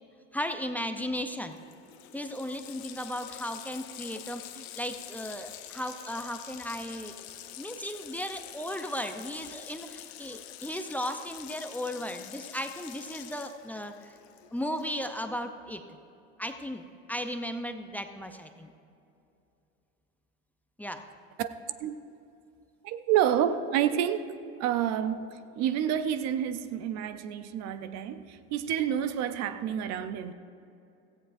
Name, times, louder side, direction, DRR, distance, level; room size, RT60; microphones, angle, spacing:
voice 1, 0.3-1.6 2.1-7.2 7.6-14.2 14.5-16.0 16.4-18.7 20.8-21.0, equal, 5° left, 0.6 m, -36 dB
Water tap faucet, 1.2-1.3 1.5-15.3, left 12 dB, 75° left, 0.9 m, -46 dB
voice 2, 22.8-24.3 24.6-30.3, right 10 dB, 55° right, 0.7 m, -29 dB
16.5 x 14.5 x 2.6 m
supercardioid pair, 100°, 32 cm